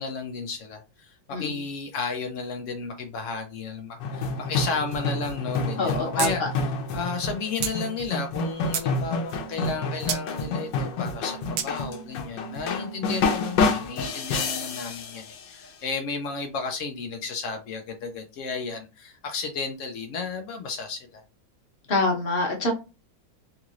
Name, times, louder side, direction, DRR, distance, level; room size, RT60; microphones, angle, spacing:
voice 1, 0.0-21.2, left 4 dB, 90° left, 0.6 m, -33 dB
sound 1, 4.0-15.7, left 3 dB, 75° left, 1.3 m, -29 dB
voice 2, 5.8-6.3 21.9-22.7, left 2 dB, 40° left, 1.0 m, -25 dB
sound 2, 6.2-6.3 6.6-6.7 7.6-7.8 8.4-8.9 10.1-10.2 11.6-11.7, right 8 dB, 70° right, 0.9 m, -28 dB
3.8 x 3.0 x 2.4 m
omnidirectional pair, 2.1 m